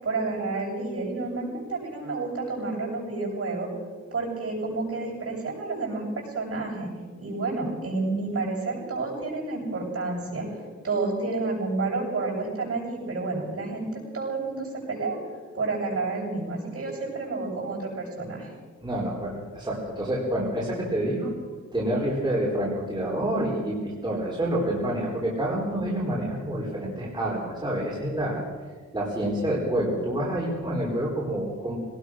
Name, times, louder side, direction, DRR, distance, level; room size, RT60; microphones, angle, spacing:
voice 1, 0.0-3.7 4.1-6.9 7.2-10.5 10.8-15.2 15.5-18.5, right 3 dB, 50° right, -2 dB, 7.9 m, -30 dB
voice 2, 18.8-21.3 21.7-28.4 28.9-31.8, right 1 dB, 15° right, -5 dB, 4.2 m, -28 dB
22.5 x 19.0 x 6.4 m, 1.5 s
wide cardioid pair, 150°, 30 cm